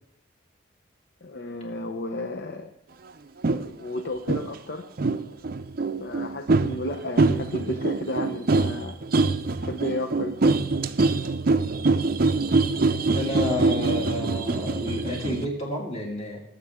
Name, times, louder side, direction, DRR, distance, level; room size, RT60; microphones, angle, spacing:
voice 1, 1.2-2.7 3.6-4.9 6.0-9.0 9.6-10.6, left 1 dB, 55° left, 6 dB, 0.8 m, -33 dB
sound 1, 3.4-3.7 4.3-4.5 5.0-15.5, right 3 dB, 50° right, 0.5 m, -24 dB
voice 2, 13.1-16.4, left 1 dB, 35° left, -2 dB, 2.5 m, -30 dB
19.0 x 7.4 x 3.7 m, 0.81 s
head